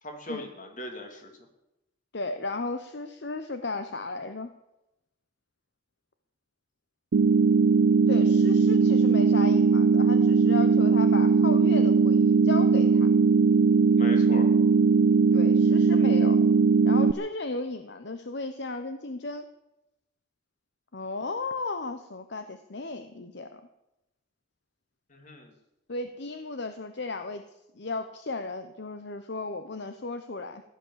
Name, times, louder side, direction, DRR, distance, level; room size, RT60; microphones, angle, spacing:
voice 1, 0.0-1.3 14.0-14.5 25.1-25.5, left 1 dB, 40° left, 4 dB, 3.0 m, -39 dB
voice 2, 2.1-4.5 8.1-13.1 15.3-16.4 16.8-19.5 20.9-23.6 25.9-27.4 27.8-30.6, left 3 dB, 55° left, 9 dB, 0.9 m, -35 dB
sound 1, 7.1-17.1, right 4 dB, 70° right, 0.5 m, -20 dB
16.0 x 11.0 x 7.5 m, 0.93 s
head